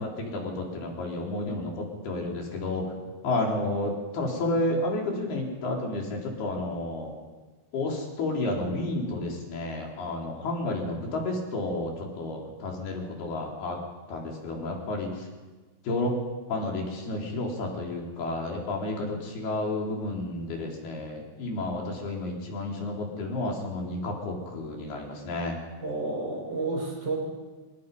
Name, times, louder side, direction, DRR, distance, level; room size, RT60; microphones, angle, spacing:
voice 1, 0.0-3.0 3.2-7.1 7.7-13.8 14.1-15.3 15.8-16.2 16.5-25.6, left 2 dB, 55° left, -1 dB, 5.5 m, -31 dB
voice 2, 25.8-27.2, right 3 dB, 20° right, -3 dB, 7.7 m, -30 dB
26.0 x 22.5 x 5.4 m, 1.3 s
omnidirectional pair, 5.6 m